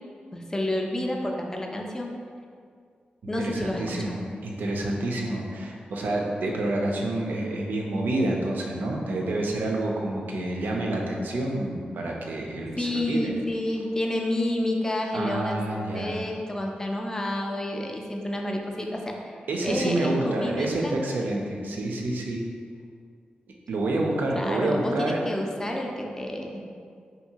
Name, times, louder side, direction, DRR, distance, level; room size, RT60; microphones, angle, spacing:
voice 1, 0.3-2.1 3.3-4.1 12.8-15.6 15.9-21.0 24.3-26.6, left 1 dB, 20° left, 1 dB, 0.3 m, -29 dB
voice 2, 3.4-13.3 15.1-16.2 19.5-22.4 23.7-25.2, right 2 dB, 75° right, 0 dB, 0.4 m, -28 dB
2.7 x 2.5 x 2.8 m, 2.2 s
cardioid pair, 75°, 3 cm